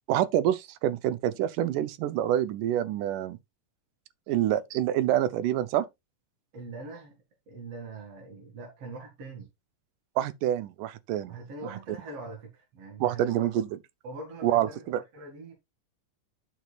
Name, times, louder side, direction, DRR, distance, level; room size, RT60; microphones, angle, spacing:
voice 1, 0.1-3.4 4.3-5.9 10.2-11.4 13.0-13.7 14.4-15.0, right 12 dB, 75° right, 2.2 m, -27 dB
voice 2, 6.5-7.2 7.5-9.5 11.2-13.5 14.0-14.9 15.1-15.5, right 3 dB, 50° right, 2.9 m, -42 dB
11.5 x 6.2 x 2.4 m
omnidirectional pair, 3.9 m